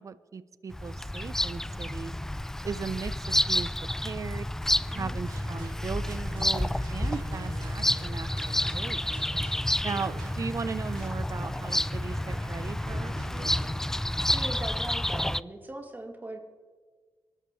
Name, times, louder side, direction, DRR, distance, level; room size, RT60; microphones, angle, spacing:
voice 1, 0.0-2.1 2.6-3.7 4.0-4.5 4.9-9.0 9.8-13.5, right 5 dB, 45° right, 15 dB, 0.7 m, -37 dB
Bird vocalization bird call bird song, 0.7-15.4, left 1 dB, 5° left, 0.3 m, -30 dB
sound 1, 5.2-14.6, right 2 dB, 75° right, 2.7 m, -47 dB
voice 2, 9.8-10.2 14.3-16.4, right 1 dB, 25° right, 2 dB, 2.6 m, -40 dB
23.5 x 12.5 x 3.2 m, 1.5 s
supercardioid pair, 60°, 8 cm